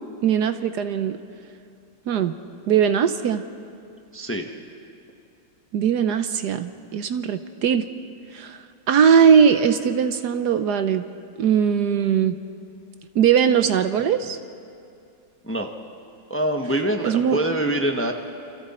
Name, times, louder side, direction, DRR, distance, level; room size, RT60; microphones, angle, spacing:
voice 1, 0.2-1.2 2.1-2.3 2.7-3.4 5.7-7.9 8.3-8.6 8.9-11.0 11.4-12.4 13.1-14.4 17.0-17.4, right 7 dB, 70° right, 10 dB, 1.3 m, -20 dB
voice 2, 4.1-4.5 15.4-15.7 16.3-18.1, right 1 dB, 10° left, 3 dB, 0.9 m, -24 dB
28.5 x 28.0 x 4.3 m, 2.5 s
omnidirectional pair, 2.0 m